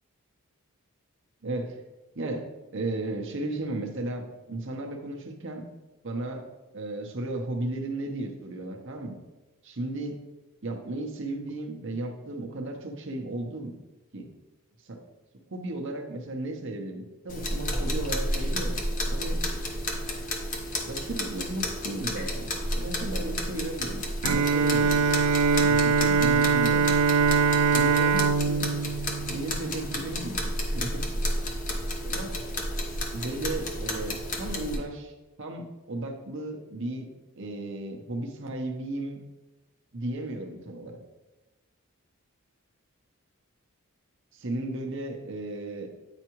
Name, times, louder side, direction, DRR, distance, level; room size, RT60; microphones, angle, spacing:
voice 1, 1.4-1.8 2.2-2.4 2.7-5.6 6.0-6.5 6.7-9.2 9.6-10.2 10.6-13.7 14.1-14.3 14.9-15.0 15.5-19.4 20.9-22.5 22.7-25.1 25.5-26.9 27.7-28.7 29.3-31.0 32.0-32.4 33.1-35.1 35.4-37.1 37.4-39.2 39.9-41.0 44.3-45.9, right 2 dB, 55° right, 2 dB, 0.9 m, -35 dB
sound 1, 17.3-34.8, left 1 dB, 35° left, 0.9 m, -31 dB
Bowed string instrument, 24.2-30.1, right 5 dB, 90° right, 0.3 m, -23 dB
8.8 x 4.7 x 3.0 m, 1.1 s
head